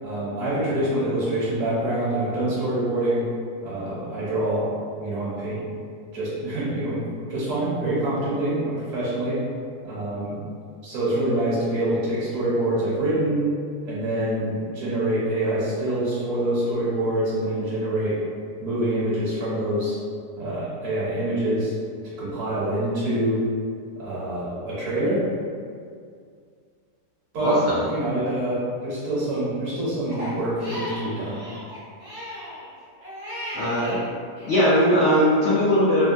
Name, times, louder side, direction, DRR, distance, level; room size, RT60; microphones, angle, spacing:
voice 1, 0.0-3.2 3.6-4.7 5.0-5.6 6.1-9.4 9.8-10.4 10.8-13.5 13.8-18.2 18.6-20.0 20.4-21.7 22.0-23.4 24.0-25.2 27.3-27.6 27.8-31.4, right 1 dB, 60° right, -8 dB, 1.1 m, -25 dB
voice 2, 27.4-27.9 33.5-34.0 34.5-36.0, equal, 80° left, -8 dB, 0.6 m, -20 dB
Crying sobbing, 30.1-34.0 34.4-35.4, equal, 30° right, 0.6 m, -36 dB
3.3 x 2.1 x 2.6 m, 2.2 s
omnidirectional pair, 1.9 m